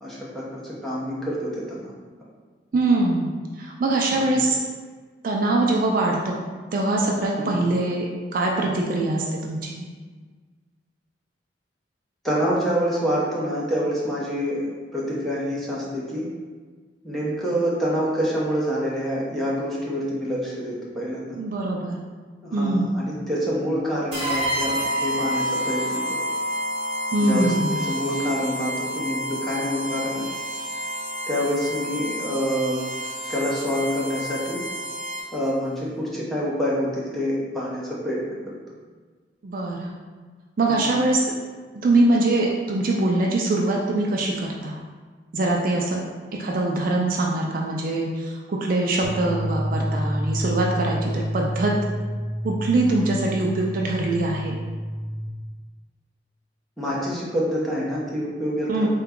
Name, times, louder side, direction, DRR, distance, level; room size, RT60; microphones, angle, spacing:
voice 1, 0.0-1.9 4.1-4.5 7.4-7.6 12.2-16.2 17.0-21.3 22.5-26.2 27.2-30.3 31.3-32.8 33.3-34.6 35.3-38.4 40.7-41.0 56.8-58.9, equal, ahead, -7 dB, 0.7 m, -27 dB
voice 2, 2.7-3.3 3.6-4.6 5.2-6.4 6.7-9.9 21.4-22.0 22.5-22.9 27.1-27.8 39.4-39.9 40.6-41.3 41.8-44.8 45.3-46.0 46.4-51.7 52.4-54.6 58.7-58.9, right 2 dB, 50° right, -1 dB, 0.4 m, -23 dB
sound 1, 24.1-35.5, equal, 35° right, 1.0 m, -29 dB
sound 2, 49.0-55.3, equal, 80° left, 0.5 m, -29 dB
3.8 x 2.3 x 3.6 m, 1.4 s
head